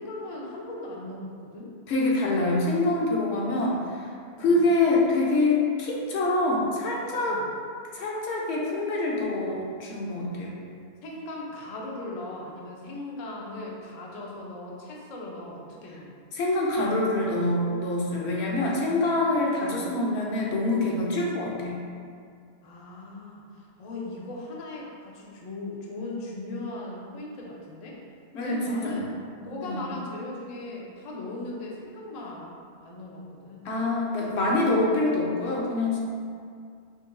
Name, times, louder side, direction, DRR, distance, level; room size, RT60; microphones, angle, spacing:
voice 1, 0.0-1.7 4.4-4.6 7.2-7.5 10.4-10.5 11.0-16.1 22.6-28.0 28.4-29.1 29.4-33.7, left 2 dB, 50° left, -3 dB, 0.5 m, -38 dB
voice 2, 1.9-3.8 4.4-7.4 7.9-10.5 16.3-21.8 28.3-29.0 29.6-29.8 33.6-36.0, left 2 dB, 85° left, -3 dB, 0.9 m, -25 dB
5.4 x 2.5 x 2.2 m, 2.3 s
omnidirectional pair, 1.1 m